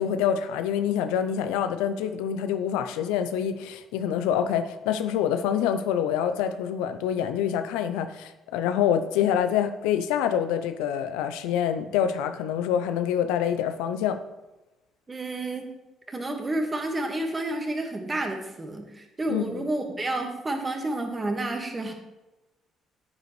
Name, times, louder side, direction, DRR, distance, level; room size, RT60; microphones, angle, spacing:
voice 1, 0.0-14.2 19.3-19.7, left 9 dB, 85° left, 9 dB, 0.5 m, -26 dB
voice 2, 15.1-15.7 16.1-21.9, right 2 dB, 30° right, 3 dB, 1.7 m, -30 dB
9.4 x 7.7 x 3.2 m, 1.0 s
supercardioid pair, 60°, 0 cm